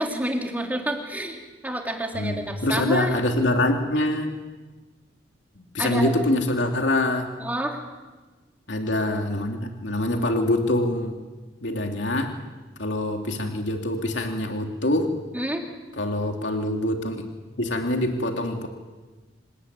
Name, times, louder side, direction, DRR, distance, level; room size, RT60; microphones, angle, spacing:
voice 1, 0.0-3.1 5.8-6.1 7.4-7.8 15.3-15.6, right 1 dB, 10° right, 1 dB, 3.2 m, -28 dB
voice 2, 2.1-4.3 5.6-7.3 8.7-11.2 11.6-12.3 12.8-15.1 16.0-17.2 17.6-18.7, left 1 dB, 80° left, 3 dB, 2.7 m, -25 dB
26.5 x 18.5 x 9.5 m, 1.3 s
head